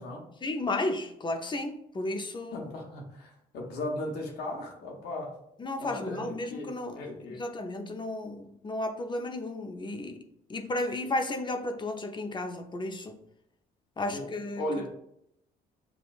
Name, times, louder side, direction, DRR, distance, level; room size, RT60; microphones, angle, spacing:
voice 1, 0.4-2.7 5.6-7.0 7.4-10.2 10.5-13.2 14.0-14.6, left 2 dB, 25° left, 5 dB, 0.6 m, -33 dB
voice 2, 2.5-5.4 5.8-7.4 14.0-14.9, left 1 dB, 75° left, 0 dB, 0.9 m, -37 dB
6.1 x 2.3 x 2.4 m, 0.76 s
supercardioid pair, 75°, 17 cm